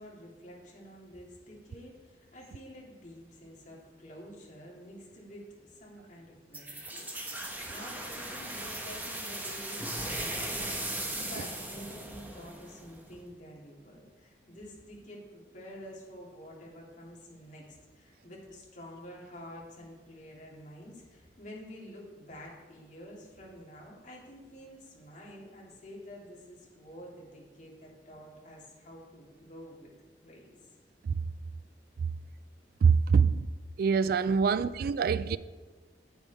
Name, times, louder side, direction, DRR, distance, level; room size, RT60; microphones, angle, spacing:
voice 1, 0.0-29.9 30.2-30.7, equal, 45° left, 2.5 m, -49 dB
sound 1, 6.5-13.1, right 1 dB, 10° right, 1.1 m, -38 dB
voice 2, 32.8-33.5 33.8-35.4, right 5 dB, 55° right, 0.3 m, -24 dB
9.3 x 8.5 x 3.5 m
head